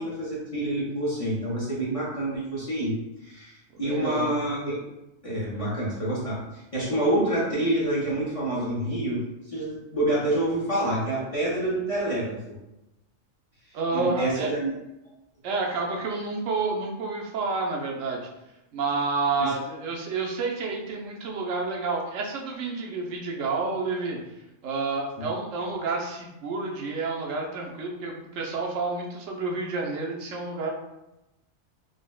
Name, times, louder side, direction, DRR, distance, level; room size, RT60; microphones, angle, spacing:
voice 1, 0.0-4.8 5.2-9.2 9.5-12.6 13.9-14.7 19.4-19.5 25.2-25.3, right 1 dB, 40° left, -7 dB, 0.6 m, -27 dB
voice 2, 3.8-4.3 13.7-14.5 15.4-18.3 18.7-24.2 24.6-30.7, right 3 dB, 85° right, -1 dB, 1.0 m, -29 dB
3.9 x 2.0 x 2.3 m, 0.94 s
omnidirectional pair, 1.3 m